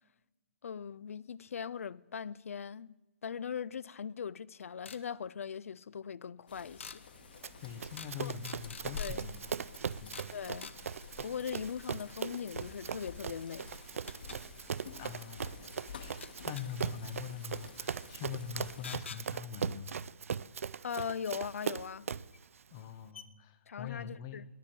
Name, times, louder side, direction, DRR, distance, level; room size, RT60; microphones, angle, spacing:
voice 1, 0.6-3.0 3.2-7.0 8.2-8.3 9.0-9.2 10.3-10.7 11.2-13.7 20.8-22.1 23.7-24.5, left 7 dB, 90° left, 0.4 m, -40 dB
sound 1, 4.8-5.0 6.8-7.0 8.0-8.2 8.4-9.2 10.1-10.3 10.6-10.8 13.0-13.1 14.1-14.4 16.2-16.7 18.8-19.2 21.3-21.4 22.3-22.4 22.8-22.9 23.1-23.3, left 6 dB, 60° left, 0.7 m, -46 dB
sound 2, 6.5-19.0, left 4 dB, 45° left, 1.3 m, -50 dB
Run, 7.4-22.4, right 7 dB, 80° right, 0.4 m, -40 dB
voice 2, 7.6-9.3 10.0-10.2 11.2-11.3 15.0-19.9 22.7-24.4, left 8 dB, 15° left, 0.4 m, -43 dB
20.5 x 7.6 x 4.3 m
hypercardioid pair, 180°, 7 cm